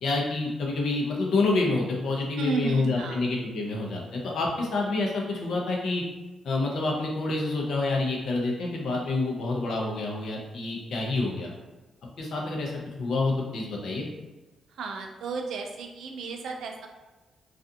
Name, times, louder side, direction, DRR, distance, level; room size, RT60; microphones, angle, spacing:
voice 1, 0.0-6.0 6.4-11.5 12.2-12.7 13.0-14.0, left 3 dB, 60° left, -1 dB, 0.5 m, -28 dB
voice 2, 2.4-3.2 14.7-16.9, right 3 dB, 70° right, 3 dB, 0.3 m, -33 dB
2.4 x 2.3 x 2.6 m, 1.1 s
wide cardioid pair, 175°, 0 cm